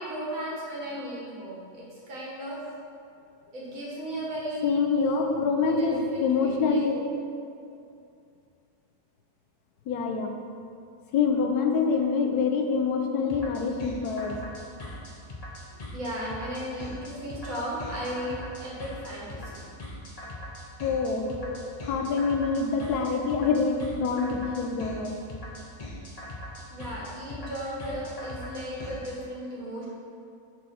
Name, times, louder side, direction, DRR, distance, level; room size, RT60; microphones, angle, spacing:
voice 1, 0.0-2.7 3.5-5.2 5.7-7.0 12.0-12.1 14.5-14.7 15.9-19.7 21.3-21.5 23.4-23.6 26.7-29.9, equal, 60° right, -6 dB, 1.8 m, -35 dB
voice 2, 4.6-7.0 9.9-10.3 11.1-14.4 20.8-21.4 21.9-25.2, left 5 dB, 85° left, 3 dB, 1.2 m, -26 dB
sound 1, 13.3-29.1, left 1 dB, 35° left, 0.6 m, -40 dB
4.6 x 4.1 x 5.7 m, 2.5 s
omnidirectional pair, 1.6 m